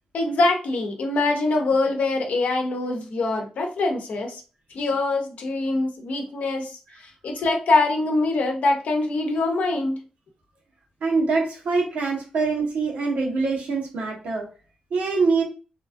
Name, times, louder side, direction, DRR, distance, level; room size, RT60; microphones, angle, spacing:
voice 1, 0.1-4.4 4.7-6.8 7.2-10.0, left 2 dB, 75° left, 3 dB, 0.7 m, -23 dB
voice 2, 11.0-14.5 14.9-15.4, right 4 dB, 85° right, -2 dB, 1.0 m, -24 dB
2.8 x 2.4 x 2.5 m, 0.34 s
cardioid pair, 65°, 3 cm